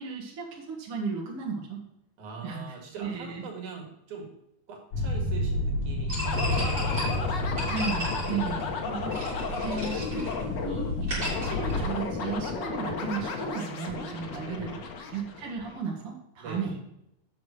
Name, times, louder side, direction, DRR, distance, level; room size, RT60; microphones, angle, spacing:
voice 1, 0.0-1.8 2.4-3.4 7.7-9.2 9.5-14.8 15.1-16.8, right 5 dB, 50° right, -1 dB, 2.6 m, -35 dB
voice 2, 2.2-4.3 4.7-7.5 8.6-9.5 14.4-14.8 16.4-16.7, right 5 dB, 80° right, 0 dB, 3.4 m, -43 dB
sound 1, 4.9-11.8, left 1 dB, 80° left, 3.5 m, -31 dB
sound 2, 6.1-12.3, equal, 35° right, 4.9 m, -37 dB
sound 3, 6.2-15.8, left 4 dB, 55° left, 1.3 m, -33 dB
8.4 x 6.0 x 5.8 m, 0.82 s
omnidirectional pair, 3.5 m